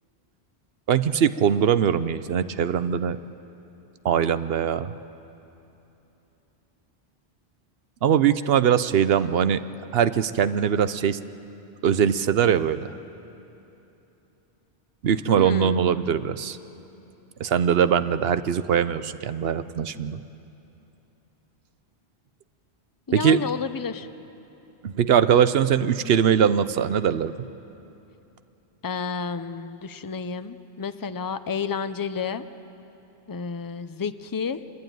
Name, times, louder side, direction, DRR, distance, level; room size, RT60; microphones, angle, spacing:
voice 1, 0.9-3.2 4.0-4.9 8.0-9.6 9.9-11.2 11.8-12.9 15.0-16.6 17.4-20.2 23.1-23.4 24.8-27.3, right 8 dB, 65° right, 13 dB, 0.9 m, -21 dB
voice 2, 15.4-15.8 23.1-24.1 28.8-32.5 33.3-34.6, left 5 dB, 25° left, 11 dB, 0.5 m, -30 dB
25.0 x 21.0 x 9.3 m, 3.0 s
omnidirectional pair, 1.1 m